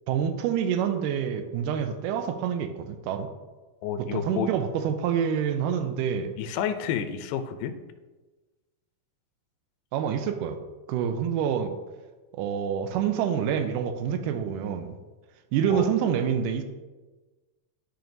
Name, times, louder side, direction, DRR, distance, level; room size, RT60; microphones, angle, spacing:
voice 1, 0.1-3.3 4.0-6.3 9.9-10.6 10.9-11.7 12.3-15.0 15.5-16.6, right 8 dB, 80° right, 8 dB, 2.0 m, -27 dB
voice 2, 3.8-4.5 6.4-7.7 15.7-15.9, left 8 dB, 85° left, 9 dB, 2.3 m, -30 dB
12.0 x 4.5 x 2.6 m, 1.2 s
omnidirectional pair, 4.0 m